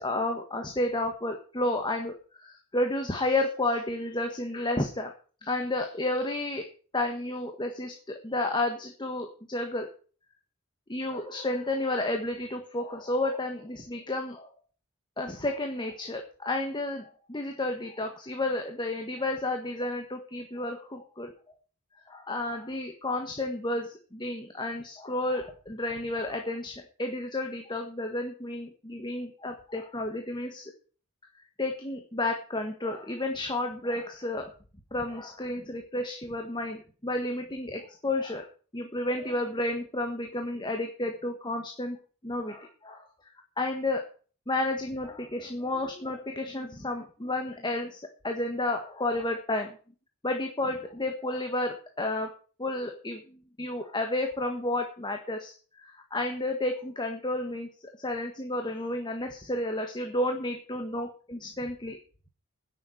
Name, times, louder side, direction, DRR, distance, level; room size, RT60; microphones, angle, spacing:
voice 1, 0.0-5.1 5.4-6.6 6.9-9.9 10.9-14.5 15.2-21.3 22.1-30.7 31.6-34.5 34.9-38.5 38.7-42.0 42.2-43.1 43.6-44.0 44.5-49.8 50.2-52.3 52.6-57.7 58.0-62.0, left 2 dB, 20° left, 4 dB, 1.6 m, -31 dB
10.5 x 7.3 x 9.4 m, 0.40 s
head